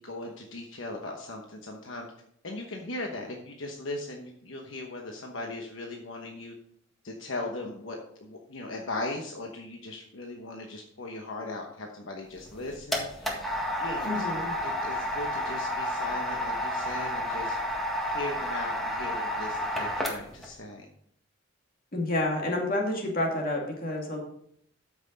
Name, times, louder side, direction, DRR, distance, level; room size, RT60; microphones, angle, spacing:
voice 1, 0.0-2.1 2.4-6.5 7.0-13.5 13.8-20.9, left 2 dB, 70° left, 1 dB, 1.1 m, -38 dB
sound 1, 12.4-20.5, equal, ahead, 1.7 m, -31 dB
voice 2, 14.0-14.5 21.9-24.2, left 1 dB, 45° left, 0 dB, 2.3 m, -29 dB
13.0 x 6.1 x 4.0 m, 0.69 s
head